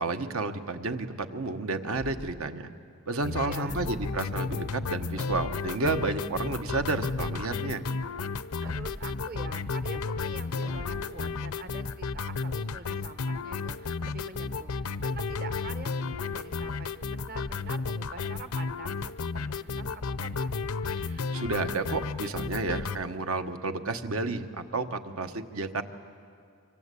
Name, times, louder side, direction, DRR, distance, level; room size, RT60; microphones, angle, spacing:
voice 1, 0.0-2.7 3.1-7.8 21.0-24.5 24.7-25.8, right 3 dB, 75° right, 8 dB, 1.2 m, -31 dB
sound 1, 1.9-2.5 3.6-4.3 5.2-5.8 6.9-7.6 8.6-9.3 10.6-11.3, equal, 15° right, 0.7 m, -43 dB
sound 2, 3.2-23.0, left 4 dB, 90° left, 0.7 m, -33 dB
voice 2, 3.4-3.8 8.6-14.7 15.0-20.6, right 4 dB, 45° right, 10 dB, 1.0 m, -45 dB
25.0 x 24.5 x 8.3 m, 2.3 s
head